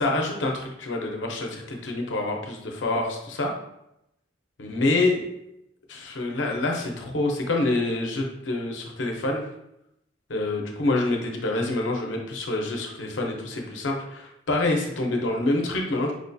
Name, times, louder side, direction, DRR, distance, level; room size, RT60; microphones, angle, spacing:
voice 1, 0.0-3.5 4.6-5.3 5.9-9.4 10.3-16.1, left 2 dB, 75° left, 1 dB, 0.6 m, -26 dB
4.9 x 2.2 x 2.6 m, 0.84 s
head